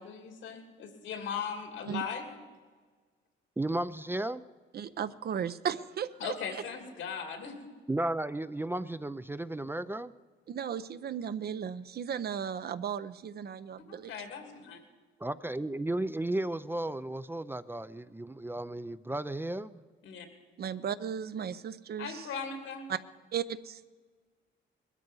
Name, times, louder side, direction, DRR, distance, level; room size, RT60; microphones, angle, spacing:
voice 1, 0.0-2.3 6.2-7.7 13.8-14.8 20.0-20.3 22.0-22.9, left 6 dB, 90° left, 4 dB, 2.8 m, -39 dB
voice 2, 3.6-4.4 7.9-10.1 15.2-19.8, right 1 dB, 10° right, 13 dB, 0.4 m, -34 dB
voice 3, 4.7-6.3 10.5-14.1 20.6-22.3 22.9-23.0 23.3-23.9, right 8 dB, 50° right, 14 dB, 0.6 m, -35 dB
20.5 x 13.0 x 5.4 m, 1.5 s
cardioid pair, 90°, 20 cm